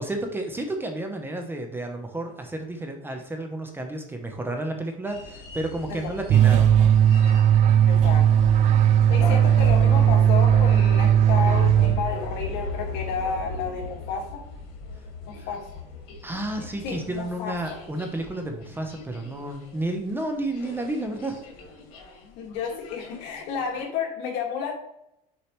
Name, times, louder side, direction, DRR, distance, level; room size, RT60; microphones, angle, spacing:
voice 1, 0.0-7.0 15.4-15.5 16.2-21.4, right 1 dB, 10° right, 4 dB, 0.8 m, -31 dB
sound 1, 5.1-19.9 20.2-20.3 20.5-23.8, left 3 dB, 85° left, 1.7 m, -37 dB
sound 2, 6.3-12.4, right 9 dB, 40° right, 0.4 m, -18 dB
voice 2, 7.9-8.3 9.1-14.4 15.3-15.7 16.8-17.8 22.4-24.7, left 6 dB, 70° left, 1 dB, 1.8 m, -31 dB
6.6 x 4.7 x 3.1 m, 0.83 s
cardioid pair, 125°, 18 cm